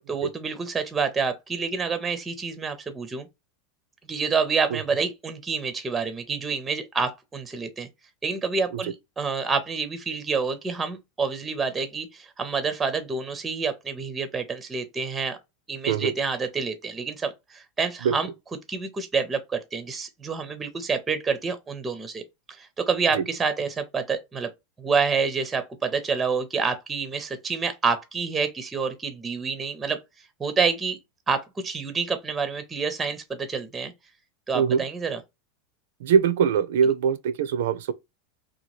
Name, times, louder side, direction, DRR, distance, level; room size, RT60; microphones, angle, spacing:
voice 1, 0.1-3.3 4.1-7.9 8.2-15.4 15.7-18.3 18.7-22.2 22.5-24.5 24.8-30.0 30.4-31.0 31.3-33.9 34.5-35.2, right 5 dB, 15° right, 0.5 m, -28 dB
voice 2, 36.0-37.9, right 7 dB, 80° right, 0.4 m, -22 dB
2.8 x 2.3 x 3.0 m
supercardioid pair, 140°, 0 cm